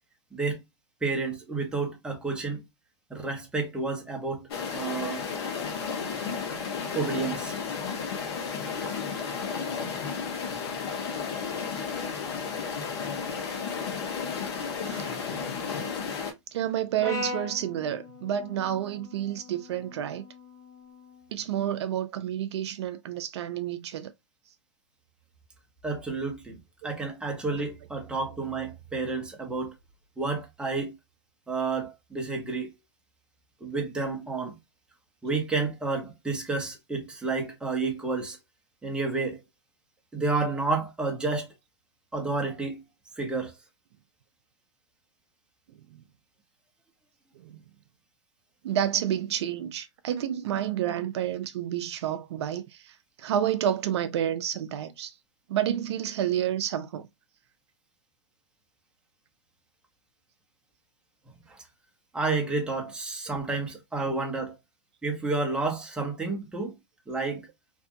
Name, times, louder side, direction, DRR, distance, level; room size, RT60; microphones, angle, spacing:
voice 1, 0.3-0.6 1.0-2.6 3.1-4.4 4.7-5.3 6.9-7.6 25.8-26.6 26.8-29.7 30.2-30.9 31.5-32.7 33.6-34.5 35.2-38.4 38.8-39.4 40.1-41.5 42.1-42.8 43.2-43.5 61.5-61.6 62.1-64.6 65.0-66.7 67.1-67.5, right 3 dB, 5° right, 0.7 m, -30 dB
sound 1, 4.5-16.3, left 6 dB, 60° left, 0.9 m, -33 dB
voice 2, 16.5-20.2 21.3-24.1 45.9-46.0 47.4-47.6 48.6-55.1 55.5-57.1, right 10 dB, 65° right, 0.4 m, -30 dB
Brass instrument, 17.0-21.2, left 2 dB, 20° left, 1.4 m, -40 dB
2.6 x 2.4 x 2.5 m
hypercardioid pair, 125°, 15 cm